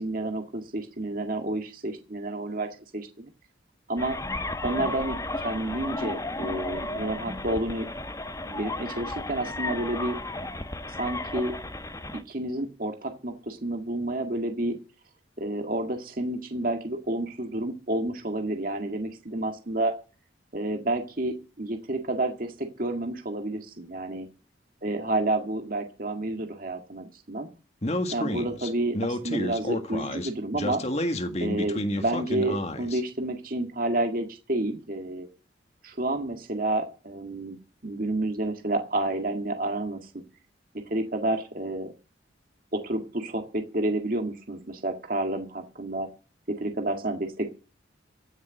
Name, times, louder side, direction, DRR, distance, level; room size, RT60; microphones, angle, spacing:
voice 1, 0.0-3.3 3.9-4.2 4.6-7.9 8.4-10.2 11.0-11.5 12.3-14.8 15.4-19.9 20.5-24.3 24.8-27.5 28.1-30.8 31.3-35.3 35.8-37.6 37.8-40.0 40.9-41.9 42.7-46.1 46.6-47.5, right 1 dB, 50° right, 5 dB, 1.9 m, -30 dB
sound 1, 4.0-12.2, left 2 dB, 15° left, 1.0 m, -34 dB
Speech, 27.8-33.0, left 1 dB, 35° left, 1.7 m, -30 dB
16.0 x 6.8 x 10.0 m, 0.36 s
head